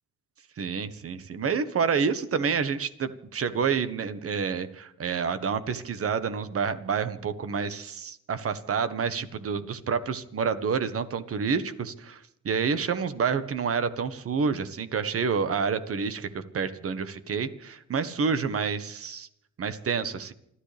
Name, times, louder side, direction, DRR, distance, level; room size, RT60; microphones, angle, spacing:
voice 1, 0.6-19.3 19.6-20.3, right 6 dB, 50° right, 12 dB, 1.5 m, -28 dB
28.5 x 13.0 x 3.5 m, 0.77 s
cardioid pair, 90°, 30 cm